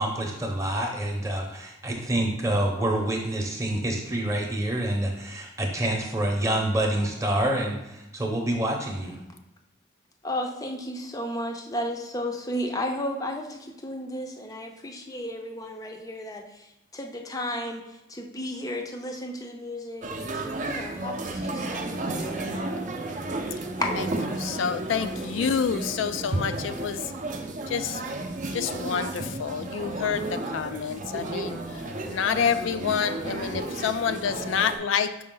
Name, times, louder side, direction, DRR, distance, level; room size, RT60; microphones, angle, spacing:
voice 1, 0.0-9.2, right 1 dB, 15° right, 2 dB, 0.8 m, -27 dB
voice 2, 10.2-16.7 16.9-17.8 18.1-22.5 23.8-23.9, left 1 dB, 15° left, 3 dB, 0.5 m, -33 dB
sound 1, 20.0-34.8, right 2 dB, 40° right, 0.5 m, -33 dB
voice 3, 24.3-27.1 27.7-28.0 28.5-35.1, left 7 dB, 70° left, 10 dB, 0.3 m, -28 dB
5.3 x 4.7 x 3.8 m, 0.93 s
head